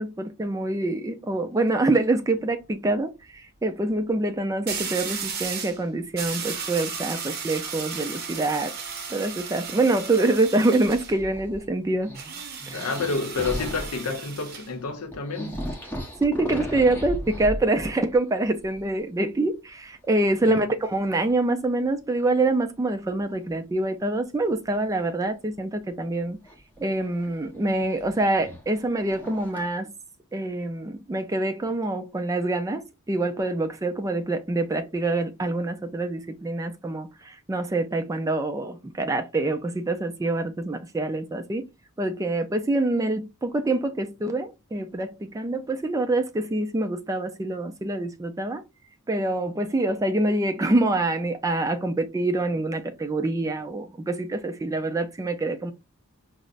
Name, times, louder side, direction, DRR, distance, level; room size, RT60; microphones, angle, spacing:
voice 1, 0.0-8.7 9.1-12.1 12.7-12.9 16.2-26.4 26.8-29.9 30.3-41.7 42.0-48.6 49.1-55.7, right 2 dB, 15° right, 0.3 m, -25 dB
sound 1, 1.5-1.9 4.7-5.8 6.2-11.2 12.1-14.7, right 6 dB, 45° right, 0.7 m, -34 dB
sound 2, 10.8-11.7 12.0-14.0 14.8-14.9 15.1-18.2 18.5-19.0 20.2-20.6 21.3-21.4 23.3-23.4 26.5-29.7, equal, 10° left, 0.9 m, -36 dB
voice 2, 12.7-15.6 20.4-20.7, left 4 dB, 80° left, 0.6 m, -29 dB
5.3 x 2.0 x 2.4 m
head